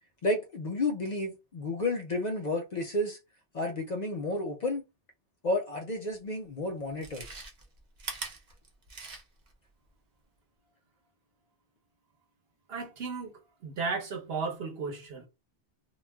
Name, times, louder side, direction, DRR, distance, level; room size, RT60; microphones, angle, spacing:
voice 1, 0.2-3.2 3.5-4.8 5.4-7.3, left 2 dB, 50° left, 0.5 m, -31 dB
Chewing mastication, 6.1-6.2 6.9-9.5 9.9-10.0, right 4 dB, 50° right, 0.7 m, -42 dB
voice 2, 12.7-15.3, right 4 dB, 65° right, 1.0 m, -35 dB
2.3 x 2.2 x 3.3 m
omnidirectional pair, 1.1 m